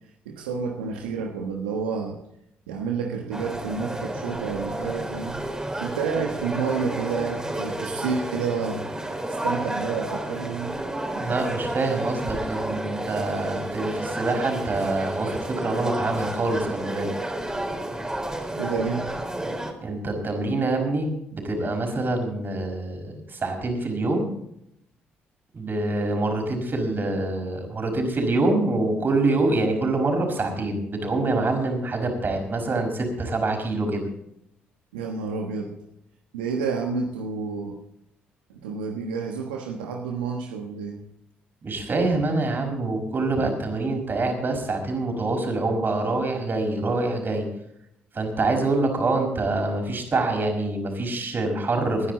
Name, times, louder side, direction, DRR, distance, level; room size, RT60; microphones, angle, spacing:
voice 1, 0.2-2.2 2.7-5.4 5.8-8.9 9.3-10.8 18.6-19.1 34.9-35.7 36.3-37.8 38.5-41.0, right 5 dB, 85° right, 2 dB, 1.3 m, -29 dB
sound 1, 3.3-19.7, right 1 dB, 15° right, 3.8 m, -31 dB
voice 2, 11.1-17.1 19.8-24.3 25.5-34.1 41.6-47.5 48.1-52.1, right 2 dB, 45° right, 4 dB, 5.2 m, -25 dB
20.5 x 10.5 x 4.1 m, 0.77 s
hypercardioid pair, 50°, 5 cm